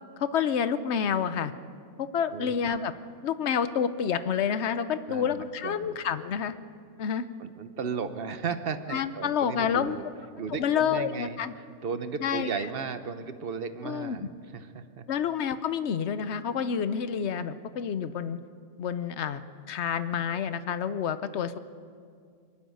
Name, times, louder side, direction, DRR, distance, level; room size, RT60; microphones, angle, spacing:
voice 1, 0.2-1.5 2.0-2.9 3.2-6.5 7.0-7.3 8.9-10.0 10.6-11.5 12.2-12.5 13.8-14.2 15.1-18.4 18.8-19.4 19.7-21.6, left 7 dB, 55° left, 13 dB, 1.0 m, -28 dB
voice 2, 5.1-6.0 7.4-10.1 10.4-11.4 11.8-15.0, right 5 dB, 45° right, 10 dB, 1.0 m, -35 dB
23.0 x 12.5 x 9.3 m, 2.2 s
omnidirectional pair, 1.5 m